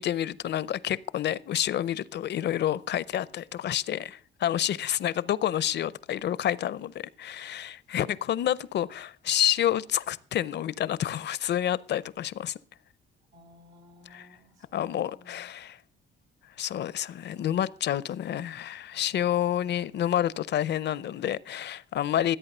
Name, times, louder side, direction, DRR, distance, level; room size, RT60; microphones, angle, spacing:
voice 1, 0.0-12.5 14.7-15.8 16.6-22.4, left 11 dB, 60° left, 0.6 m, -29 dB
voice 2, 8.0-8.4 13.3-15.7 17.8-18.4, left 1 dB, 80° right, 2.6 m, -57 dB
13.5 x 8.5 x 5.5 m
cardioid pair, 90°, 20 cm